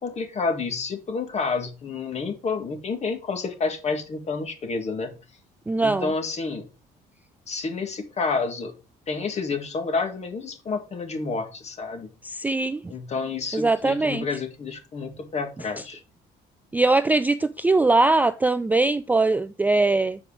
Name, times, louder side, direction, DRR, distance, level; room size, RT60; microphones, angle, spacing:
voice 1, 0.0-5.1 5.8-6.7 7.5-8.7 9.1-12.1 12.9-16.0, left 4 dB, 40° left, 2.0 m, -29 dB
voice 2, 5.7-6.1 12.2-12.9 13.5-14.3 16.7-20.2, right 3 dB, 10° right, 0.3 m, -21 dB
7.7 x 4.8 x 4.9 m
cardioid pair, 110°, 17 cm